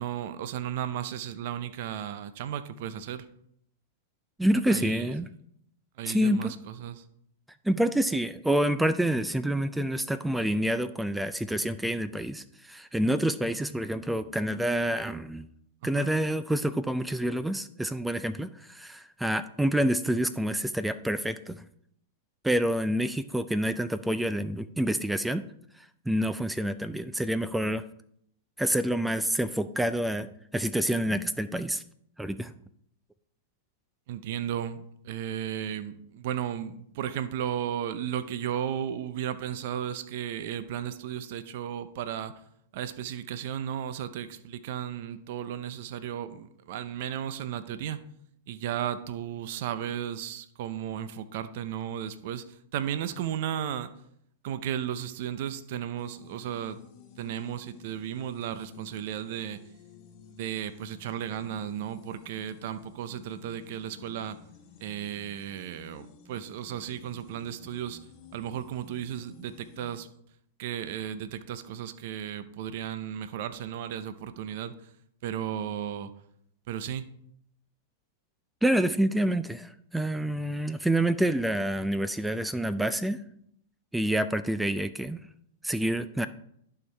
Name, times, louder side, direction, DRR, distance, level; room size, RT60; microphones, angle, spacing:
voice 1, 0.0-3.3 4.7-5.1 6.0-7.0 15.9-16.1 34.1-42.3 42.7-48.0 48.5-53.9 54.4-56.8 57.2-59.6 60.3-64.4 64.8-68.0 68.3-70.1 70.6-74.8 75.2-76.1 76.7-77.1, right 10 dB, 60° right, 12 dB, 0.6 m, -34 dB
voice 2, 4.4-5.3 6.1-6.5 7.6-15.5 15.8-21.6 22.4-25.4 26.1-27.8 28.6-31.8 32.2-32.5 78.6-83.2 83.9-85.2 85.6-86.3, right 1 dB, 5° right, 13 dB, 0.3 m, -27 dB
sound 1, 56.0-70.0, left 8 dB, 40° left, 1.1 m, -53 dB
11.5 x 4.6 x 3.4 m, 0.72 s
hypercardioid pair, 130°, 0 cm